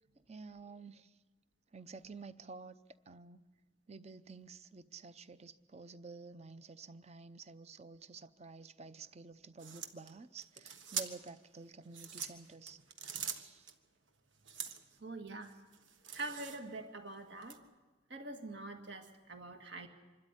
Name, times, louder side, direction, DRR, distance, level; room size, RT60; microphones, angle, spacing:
voice 1, 0.3-1.2 1.7-2.7 3.1-3.4 3.9-13.7, right 4 dB, 35° right, 13 dB, 0.7 m, -51 dB
sound 1, 9.6-11.4 11.8-13.7 14.4-15.0 15.4-16.8 17.4-17.6, right 7 dB, 85° right, 1.5 m, -43 dB
voice 2, 15.0-15.5 16.1-17.6 18.1-19.9, right 2 dB, 65° right, 4 dB, 2.0 m, -44 dB
26.0 x 13.0 x 9.9 m, 1.3 s
head